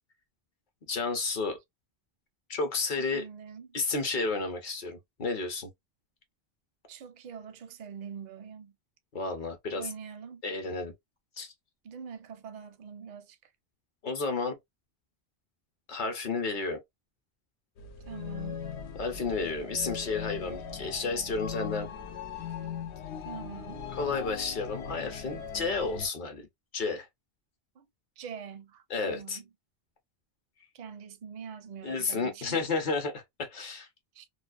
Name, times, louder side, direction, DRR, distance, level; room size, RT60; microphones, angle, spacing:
voice 1, 0.9-1.6 2.5-3.3 3.7-5.7 9.1-9.9 10.4-10.9 11.4-11.5 14.0-14.6 15.9-16.8 19.0-21.9 23.9-26.5 26.7-27.1 28.9-29.4 31.8-33.9, left 4 dB, 50° left, 0.8 m, -31 dB
voice 2, 3.0-3.7 6.9-8.8 9.7-10.4 11.8-13.5 18.0-18.7 23.2-23.9 27.8-27.9 28.2-29.4 30.7-32.6 34.1-34.3, right 7 dB, 55° right, 0.5 m, -44 dB
sound 1, 17.8-26.1, left 7 dB, 85° left, 0.9 m, -39 dB
2.4 x 2.3 x 2.3 m
omnidirectional pair, 1.1 m